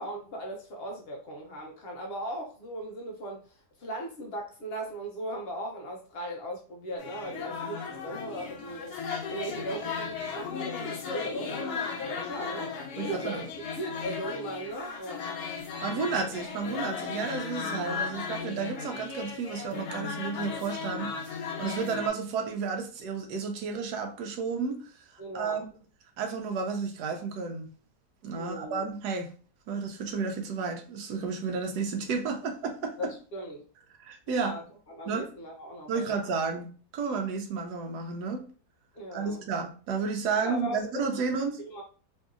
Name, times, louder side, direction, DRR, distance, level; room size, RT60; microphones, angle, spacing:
voice 1, 0.0-3.5 3.8-8.9 9.3-12.7 13.0-13.4 13.8-15.3 25.2-25.6 28.4-28.9 33.0-33.6 34.3-34.6 34.9-36.2 38.9-39.5 40.4-40.8 41.3-41.8, right 1 dB, 60° left, 0 dB, 0.6 m, -38 dB
sound 1, 7.0-22.1, left 5 dB, 90° left, 1.2 m, -36 dB
voice 2, 13.0-13.5 15.8-24.8 25.1-25.7 26.2-27.7 28.2-29.3 29.7-32.9 34.0-34.6 35.1-35.3 35.9-38.4 39.1-41.6, right 5 dB, 85° right, 3 dB, 1.1 m, -32 dB
3.0 x 2.7 x 2.4 m, 0.39 s
omnidirectional pair, 1.7 m